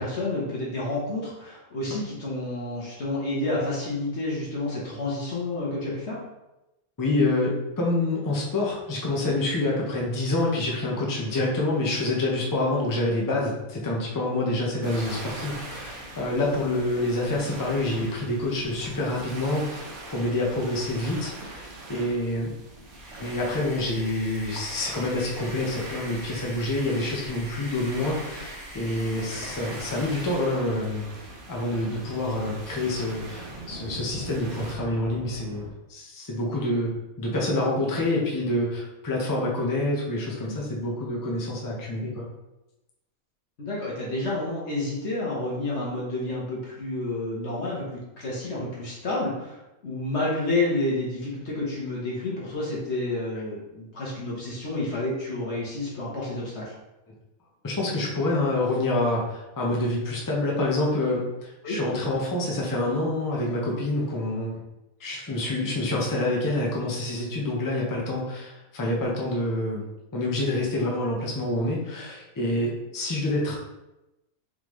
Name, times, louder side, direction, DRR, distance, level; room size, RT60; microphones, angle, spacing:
voice 1, 0.0-6.2 29.4-29.5 43.6-56.7 61.6-61.8, left 2 dB, 55° left, -5 dB, 1.2 m, -30 dB
voice 2, 7.0-22.5 23.2-31.0 31.5-35.6 35.9-42.2 57.6-64.5 65.0-69.8 70.1-73.6, left 2 dB, 20° left, -3 dB, 0.5 m, -27 dB
sound 1, 14.8-34.8, right 2 dB, 60° right, 1.0 m, -42 dB
sound 2, 22.8-30.6, equal, 5° left, 1.0 m, -43 dB
sound 3, 28.7-35.7, right 1 dB, 40° right, 0.5 m, -43 dB
3.8 x 3.3 x 3.1 m, 0.96 s
omnidirectional pair, 1.5 m